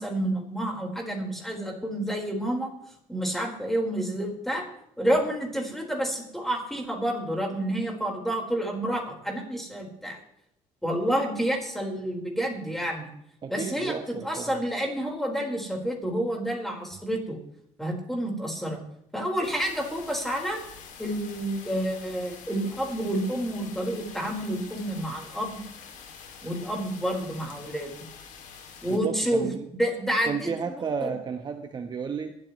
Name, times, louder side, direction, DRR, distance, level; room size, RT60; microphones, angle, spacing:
voice 1, 0.0-2.7 3.1-4.6 5.0-10.2 10.8-13.1 13.5-17.4 17.8-18.8 19.1-20.6 21.0-25.6 26.4-27.9 28.8-29.5 29.7-30.8 31.0-31.1, right 1 dB, ahead, 0 dB, 4.6 m, -29 dB
voice 2, 13.4-14.6 28.9-29.7 30.2-32.4, right 6 dB, 35° right, 5 dB, 1.2 m, -32 dB
sound 1, 19.4-29.0, left 6 dB, 80° left, 2.8 m, -46 dB
22.0 x 13.5 x 3.2 m, 0.73 s
cardioid pair, 140°, 13 cm